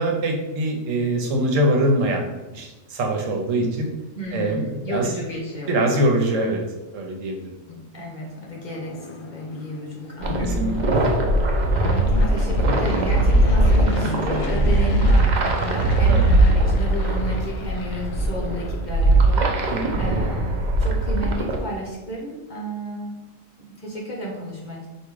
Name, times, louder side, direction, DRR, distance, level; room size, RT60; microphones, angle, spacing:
voice 1, 0.0-2.3 2.5-3.9 4.3-5.1 5.7-6.6 6.9-7.5 10.4-10.7 16.1-16.2 19.7-20.0, right 1 dB, 75° right, 2 dB, 1.1 m, -23 dB
voice 2, 4.1-6.0 7.7-11.2 11.7-23.2 23.6-24.9, equal, 45° left, -3 dB, 0.7 m, -32 dB
Fixed-wing aircraft airplane, 8.3-19.4, left 3 dB, 80° left, 1.0 m, -35 dB
sound 1, 10.2-21.6, right 1 dB, 55° right, 0.5 m, -20 dB
3.5 x 2.6 x 4.6 m, 1.1 s
omnidirectional pair, 1.4 m